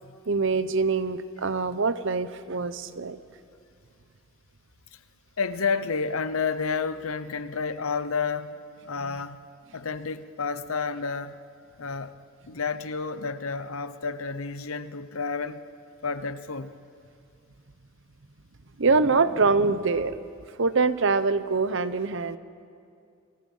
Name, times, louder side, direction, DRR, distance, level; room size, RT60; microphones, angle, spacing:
voice 1, 0.3-3.2 18.8-20.2 20.6-22.4, right 4 dB, 65° right, 13 dB, 0.9 m, -24 dB
voice 2, 5.4-8.5 8.9-9.4 9.7-11.4 11.8-12.1 12.5-15.6 16.0-16.7, left 5 dB, 90° left, 13 dB, 0.9 m, -30 dB
27.0 x 20.5 x 5.6 m, 2.4 s
head